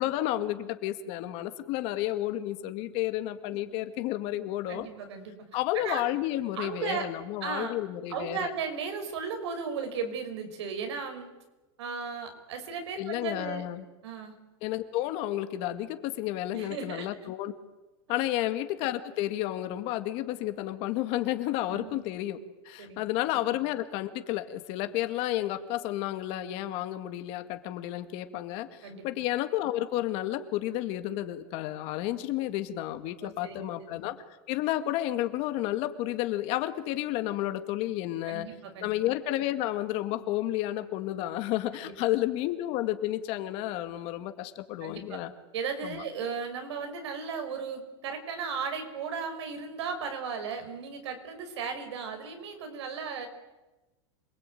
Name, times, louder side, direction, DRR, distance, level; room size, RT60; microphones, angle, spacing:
voice 1, 0.0-4.9 5.5-8.5 13.0-13.8 14.6-17.5 18.1-34.2 34.5-38.5 38.8-45.3 45.8-46.0, left 14 dB, 45° left, 9 dB, 2.1 m, -31 dB
voice 2, 4.7-5.3 5.8-6.0 6.6-7.1 7.4-7.7 8.1-11.3 11.8-13.6 14.0-14.3 16.5-17.1 18.1-18.4 21.7-22.0 22.8-23.1 23.3-23.4 28.8-29.1 33.2-33.7 33.9-34.1 38.3-38.9 41.8-41.9 44.8-45.2 45.5-53.3, right 5 dB, 85° right, 6 dB, 5.8 m, -36 dB
27.0 x 21.0 x 9.3 m, 1.1 s
supercardioid pair, 155°, 14 cm